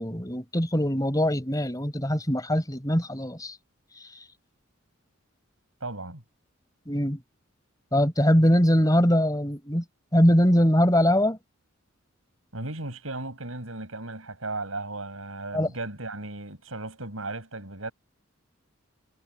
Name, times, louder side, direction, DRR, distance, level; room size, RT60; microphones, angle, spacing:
voice 1, 0.0-3.6 4.0-4.3 6.9-7.2 7.9-9.8 10.1-11.4 15.5-15.7, equal, 15° left, 4.5 m, -22 dB
voice 2, 5.8-6.2 12.5-17.9, right 2 dB, 75° right, 7.9 m, -36 dB
head